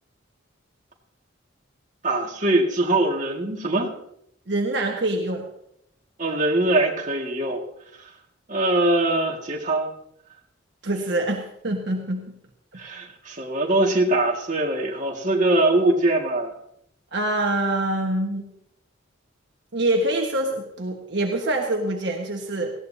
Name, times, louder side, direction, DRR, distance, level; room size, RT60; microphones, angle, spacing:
voice 1, 2.0-3.9 6.2-7.6 8.0-8.1 8.5-9.9 12.8-16.5, right 2 dB, 40° right, -1 dB, 1.9 m, -22 dB
voice 2, 4.5-5.5 10.8-12.3 17.1-18.5 19.7-22.7, right 1 dB, 60° right, 1 dB, 1.4 m, -25 dB
19.0 x 15.5 x 2.8 m, 0.73 s
head